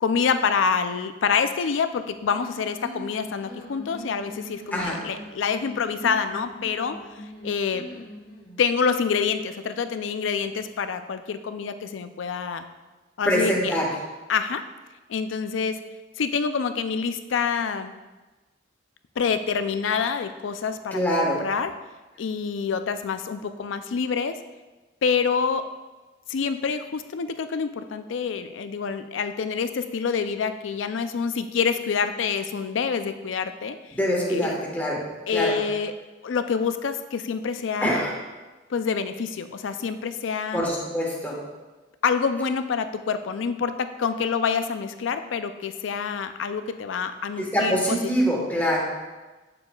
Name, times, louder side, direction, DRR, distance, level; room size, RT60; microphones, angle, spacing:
voice 1, 0.0-7.0 7.4-8.1 8.6-12.7 13.2-13.7 14.3-14.6 15.1-15.8 16.2-17.9 19.2-21.7 22.2-24.4 25.0-25.6 26.3-33.8 34.3-34.6 35.3-35.9 36.2-38.0 38.7-40.6 42.0-48.0, left 6 dB, 80° left, 10 dB, 0.4 m, -27 dB
sound 1, 2.3-8.7, left 1 dB, 45° left, 1.2 m, -42 dB
voice 2, 13.2-13.9 20.9-21.4 33.9-35.0 35.3-35.5 37.8-38.1 40.5-41.4 47.4-48.8, equal, 10° left, -3 dB, 1.3 m, -24 dB
8.5 x 6.9 x 2.3 m, 1.2 s
head